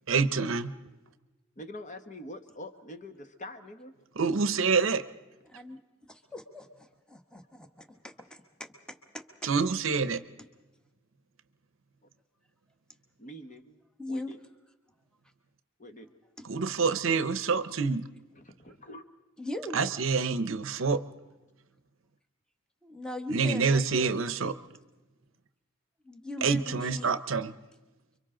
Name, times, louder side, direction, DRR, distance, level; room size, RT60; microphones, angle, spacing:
voice 1, 0.1-0.7 4.2-5.0 9.4-10.2 16.4-18.1 19.7-21.0 23.3-24.5 26.4-27.5, right 5 dB, 70° right, 0.7 m, -27 dB
voice 2, 1.6-3.9 13.2-14.4 15.8-16.1 18.3-19.0, left 1 dB, 35° left, 1.3 m, -45 dB
voice 3, 5.5-5.8 6.1-6.7 7.1-8.4 9.1-9.2 14.0-14.3 16.4-16.5 19.4-19.8 22.8-24.1 26.0-27.2, left 2 dB, 5° left, 1.2 m, -39 dB
30.0 x 24.0 x 3.8 m
head